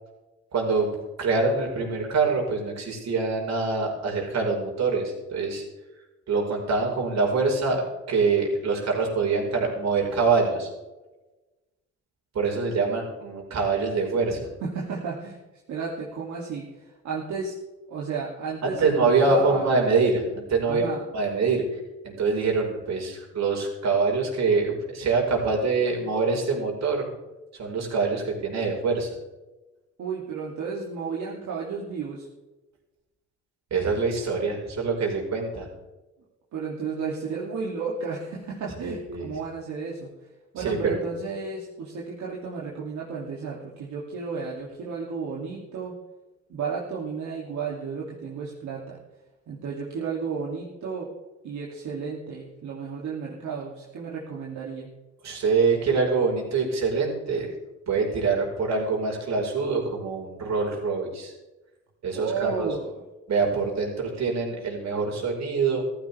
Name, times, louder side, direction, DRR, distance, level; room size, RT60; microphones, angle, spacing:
voice 1, 0.5-0.9 1.2-5.6 6.3-7.8 8.1-10.7 12.3-14.5 18.6-20.9 21.1-27.1 27.5-29.1 33.7-35.7 38.8-39.4 40.6-41.1 55.2-57.5 57.9-61.3 62.0-62.8 63.3-65.8, right 4 dB, 60° right, 0 dB, 5.3 m, -25 dB
voice 2, 14.6-15.4 15.7-17.6 17.9-19.7 20.6-21.0 30.0-32.3 36.5-40.1 40.5-45.9 46.5-49.0 49.5-51.1 51.4-54.9 62.1-62.9, right 5 dB, 75° right, -4 dB, 3.0 m, -33 dB
15.0 x 14.5 x 3.6 m, 1.1 s
cardioid pair, 90°, 30 cm